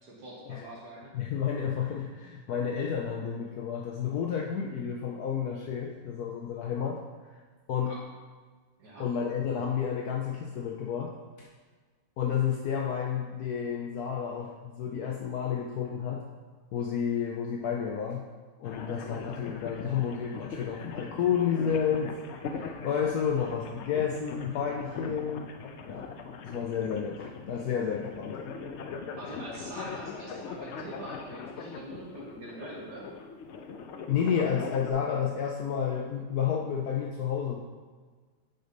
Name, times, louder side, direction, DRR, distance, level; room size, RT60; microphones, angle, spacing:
voice 1, 0.0-1.1 7.9-8.0 8.8-9.1 29.1-33.0, right 1 dB, 70° right, -4 dB, 1.9 m, -44 dB
voice 2, 1.1-7.0 7.7-7.9 9.0-11.1 11.4-11.5 12.2-16.2 16.7-18.2 18.6-22.1 22.4-25.5 25.9-26.1 26.4-28.4 34.1-37.6, left 7 dB, 70° left, 0 dB, 1.1 m, -31 dB
sound 1, 18.6-34.9, left 5 dB, 90° left, 0.6 m, -41 dB
8.1 x 3.9 x 5.2 m, 1.4 s
omnidirectional pair, 1.9 m